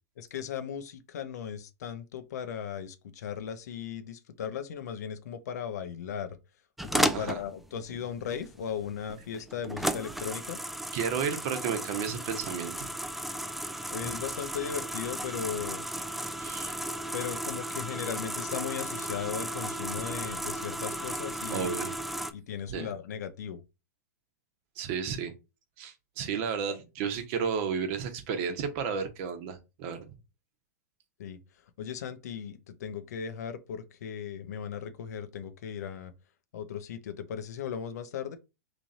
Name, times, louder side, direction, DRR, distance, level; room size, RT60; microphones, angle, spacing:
voice 1, 0.2-6.4 6.9-10.6 13.9-15.8 17.1-21.8 22.3-23.6 26.7-26.8 31.2-31.4 31.8-36.1 36.5-38.4, left 8 dB, 70° left, 0.6 m, -37 dB
sound 1, 6.8-22.3, right 1 dB, ahead, 0.3 m, -35 dB
voice 2, 10.9-12.9 16.4-16.8 21.5-21.9 22.7-22.9 24.8-25.3 25.8-30.2, right 6 dB, 50° right, 0.9 m, -32 dB
3.1 x 2.6 x 4.1 m
hypercardioid pair, 115°, 9 cm